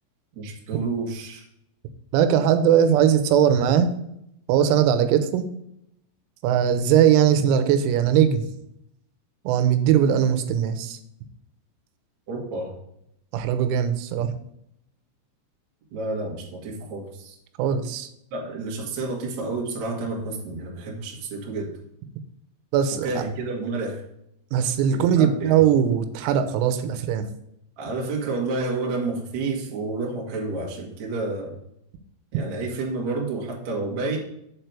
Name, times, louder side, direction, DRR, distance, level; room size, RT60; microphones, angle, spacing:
voice 1, 0.3-1.4 12.3-12.8 15.9-17.4 18.3-21.7 23.0-24.0 24.9-25.5 27.8-31.6 32.3-34.2, right 3 dB, 60° right, -1 dB, 1.8 m, -30 dB
voice 2, 2.1-3.9 4.5-5.4 6.4-8.5 9.5-11.0 13.3-14.3 17.6-18.1 22.7-23.2 24.5-27.3, right 9 dB, 90° right, 9 dB, 3.5 m, -20 dB
7.3 x 4.5 x 6.7 m, 0.76 s
omnidirectional pair, 6.0 m